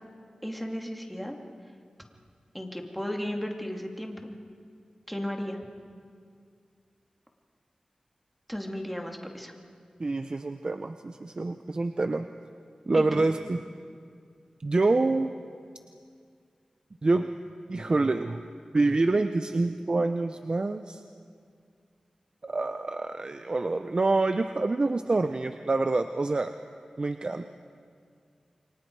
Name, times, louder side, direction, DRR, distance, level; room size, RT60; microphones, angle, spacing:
voice 1, 0.4-1.4 2.5-4.3 5.1-5.6 8.5-9.5 12.9-13.3, equal, ahead, 2 dB, 2.6 m, -34 dB
voice 2, 10.0-12.3 12.9-13.6 14.6-15.3 17.0-17.3 17.7-18.4 18.7-21.0 22.4-26.5 27.0-27.4, right 3 dB, 45° right, 8 dB, 0.7 m, -26 dB
28.5 x 24.0 x 4.8 m, 2.2 s
wide cardioid pair, 65°, 2 cm